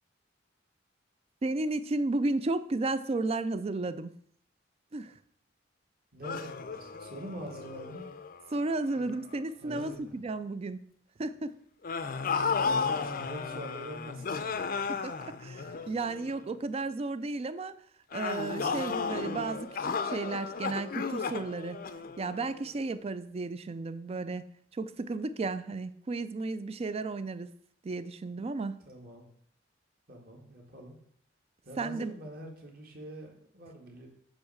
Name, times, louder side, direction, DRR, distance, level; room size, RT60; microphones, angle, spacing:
voice 1, 1.4-4.1 4.9-5.1 8.5-10.9 11.2-11.6 14.9-17.8 18.1-21.8 22.2-24.5 24.7-27.5 27.8-28.8 31.8-32.1, right 3 dB, 35° right, 13 dB, 0.4 m, -33 dB
voice 2, 6.1-8.1 9.6-10.2 13.1-14.5 28.9-29.3 30.1-31.0 31.6-34.1, right 1 dB, 55° right, 1 dB, 1.7 m, -44 dB
sound 1, 6.2-9.3 9.7-10.0 11.8-16.4 18.1-22.7, left 5 dB, 50° left, 0.5 m, -34 dB
8.2 x 3.2 x 6.4 m, 0.65 s
head